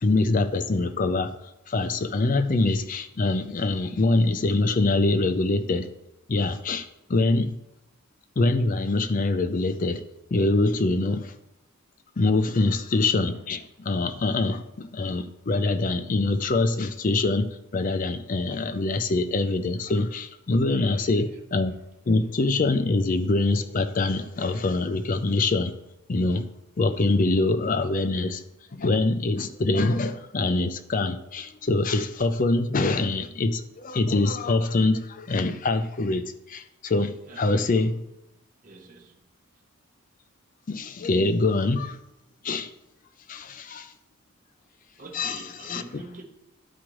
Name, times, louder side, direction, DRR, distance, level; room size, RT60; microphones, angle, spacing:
voice 1, 0.0-1.3 1.7-5.9 6.3-7.6 8.4-10.0 10.3-11.3 12.2-21.7 22.1-25.7 26.1-26.4 26.8-28.4 28.7-38.0 40.7-42.0 42.4-42.7 43.3-43.9 45.1-46.0, left 2 dB, 40° left, 0.5 m, -24 dB
voice 2, 20.7-21.4 37.3-38.0 38.6-39.2 45.0-46.2, right 3 dB, 40° right, 0.9 m, -45 dB
12.0 x 4.9 x 3.0 m
head